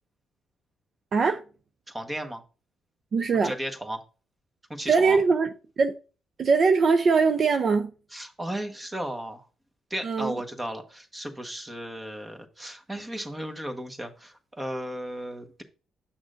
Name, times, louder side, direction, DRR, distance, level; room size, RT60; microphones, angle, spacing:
voice 1, 1.1-1.4 3.1-3.5 4.9-5.5 5.8-5.9 6.4-7.9 10.0-10.3, right 4 dB, 50° right, 0.6 m, -21 dB
voice 2, 1.9-2.4 3.4-4.0 4.7-5.2 8.1-9.5 9.9-15.6, right 1 dB, 15° right, 1.3 m, -35 dB
8.7 x 6.1 x 2.6 m
cardioid pair, 90°, 0 cm